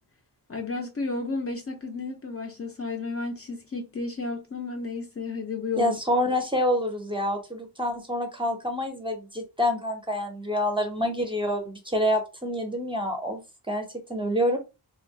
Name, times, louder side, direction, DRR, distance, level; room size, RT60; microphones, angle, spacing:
voice 1, 0.5-6.0, left 3 dB, 35° left, 0.5 m, -32 dB
voice 2, 5.7-13.4 13.7-14.6, left 1 dB, 10° right, 0.6 m, -27 dB
3.0 x 2.1 x 2.6 m
wide cardioid pair, 140°, 40 cm